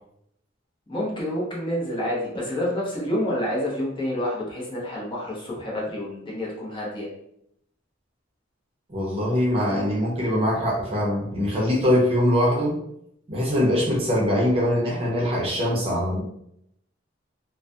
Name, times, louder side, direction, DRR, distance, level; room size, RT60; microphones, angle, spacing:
voice 1, 0.9-7.1, left 1 dB, 25° left, -5 dB, 0.7 m, -28 dB
voice 2, 8.9-12.8 13.3-16.2, left 1 dB, 30° right, -4 dB, 0.6 m, -22 dB
2.3 x 2.1 x 2.5 m, 0.75 s
head